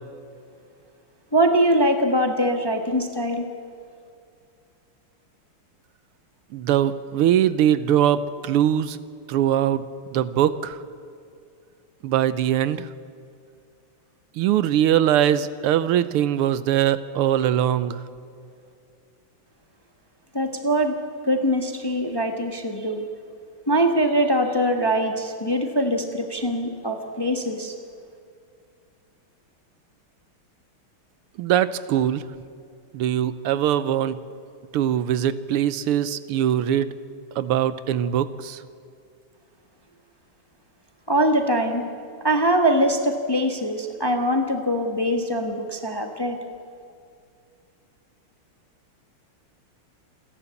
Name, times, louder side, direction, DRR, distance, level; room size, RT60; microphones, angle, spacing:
voice 1, 1.3-3.5 20.3-21.0 21.2-23.1 23.7-27.7 41.1-41.8 42.2-46.4, right 1 dB, 15° left, 5 dB, 1.0 m, -22 dB
voice 2, 6.5-9.0 9.3-9.9 10.1-10.8 12.0-12.9 14.4-18.0 31.4-32.2 32.9-34.2 34.7-36.9 37.4-38.6, right 10 dB, 85° right, 15 dB, 1.7 m, -21 dB
28.0 x 11.0 x 8.3 m, 2.4 s
omnidirectional pair, 2.4 m